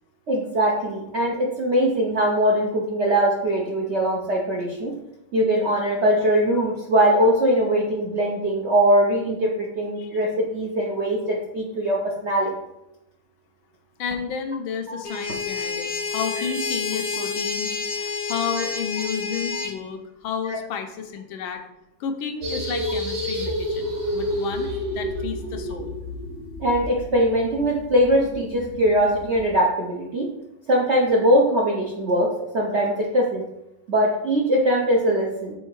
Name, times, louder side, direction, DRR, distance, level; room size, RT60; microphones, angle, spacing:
voice 1, 0.3-4.9 5.3-12.5 14.9-15.0 18.6-18.7 20.5-20.6 26.6-30.3 30.7-33.4 33.9-35.5, equal, 60° right, -2 dB, 0.7 m, -21 dB
voice 2, 14.0-21.6 22.0-24.7 24.9-26.0, left 6 dB, 85° left, 5 dB, 1.5 m, -31 dB
sound 1, 15.0-19.7, left 4 dB, 60° left, 0.9 m, -29 dB
sound 2, 22.4-29.5, equal, 90° right, 2.1 m, -30 dB
5.5 x 3.9 x 4.6 m, 0.86 s
omnidirectional pair, 2.2 m